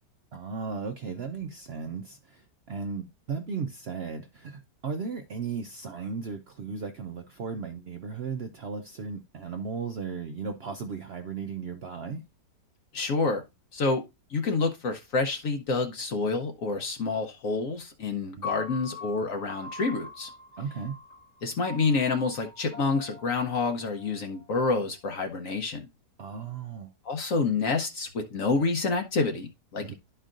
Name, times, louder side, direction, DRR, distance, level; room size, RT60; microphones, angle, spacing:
voice 1, 0.3-12.2 18.4-18.5 20.6-21.0 26.2-26.9 29.8-29.9, right 5 dB, 70° right, 0.6 m, -36 dB
voice 2, 12.9-13.4 13.7-14.0 14.3-20.3 21.4-25.9 27.0-29.9, left 4 dB, 60° left, 1.1 m, -28 dB
Piano, 18.4-24.6, left 4 dB, 20° right, 0.5 m, -42 dB
12.0 x 4.5 x 2.5 m
omnidirectional pair, 1.8 m